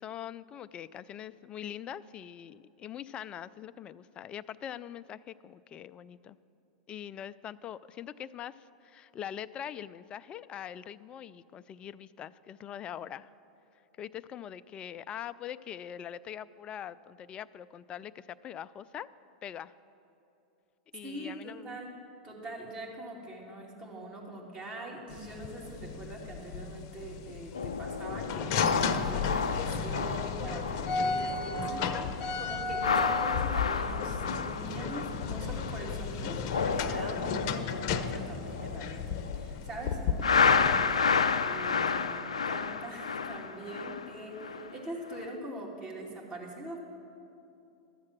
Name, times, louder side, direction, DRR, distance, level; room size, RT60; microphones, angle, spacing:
voice 1, 0.0-6.4 6.9-13.3 14.0-19.1 19.4-19.7 20.9-21.8, left 10 dB, 30° left, 16 dB, 0.3 m, -43 dB
voice 2, 21.0-21.9 22.2-46.8, right 1 dB, 30° right, -2 dB, 2.7 m, -43 dB
sound 1, 25.1-40.8, left 5 dB, 55° left, 0.7 m, -34 dB
sound 2, 27.5-31.7 32.0-32.3 32.7-35.9 36.3-39.5 40.2-44.7 45.1-45.3, left 5 dB, 90° left, 0.5 m, -31 dB
12.5 x 7.5 x 7.4 m, 2.7 s
hypercardioid pair, 100°, 3 cm